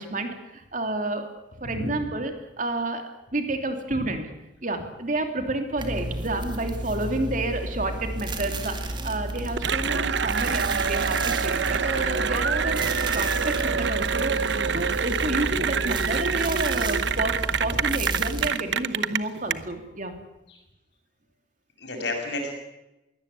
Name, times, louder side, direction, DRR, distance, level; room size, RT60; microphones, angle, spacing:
voice 1, 0.0-1.3 1.6-3.0 3.3-4.2 4.6-20.1, right 2 dB, 40° right, 6 dB, 3.0 m, -30 dB
voice 2, 1.6-2.1 3.9-4.0 11.8-11.9 20.5-20.6 21.8-22.5, left 2 dB, 65° left, 3 dB, 7.1 m, -32 dB
sound 1, 5.8-18.5, right 1 dB, 25° right, 2.2 m, -32 dB
Cheering / Applause, 9.6-19.5, right 6 dB, 65° right, 0.9 m, -26 dB
22.0 x 17.5 x 8.4 m, 0.94 s
head